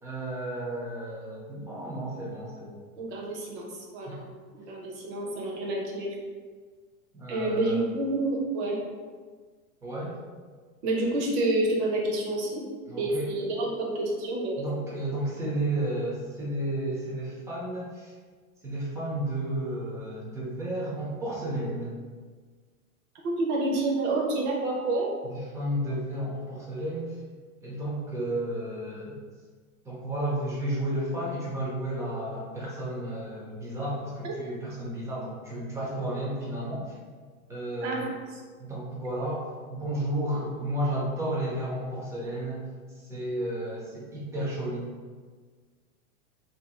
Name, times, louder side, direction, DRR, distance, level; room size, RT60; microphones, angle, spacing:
voice 1, 0.0-2.8 4.1-4.2 7.1-7.8 9.8-10.1 12.9-13.3 14.6-18.1 18.6-22.0 25.2-27.1 27.6-29.2 29.8-36.9 37.5-38.1 38.6-42.7 43.1-44.8, right 1 dB, 5° right, -6 dB, 0.6 m, -32 dB
voice 2, 3.0-4.2 4.5-6.1 7.3-8.8 10.8-12.6 13.0-14.6 23.2-25.1 34.2-34.3 37.8-38.1, right 2 dB, 50° right, -1 dB, 0.9 m, -28 dB
2.9 x 2.5 x 3.7 m, 1.5 s
supercardioid pair, 145°, 43 cm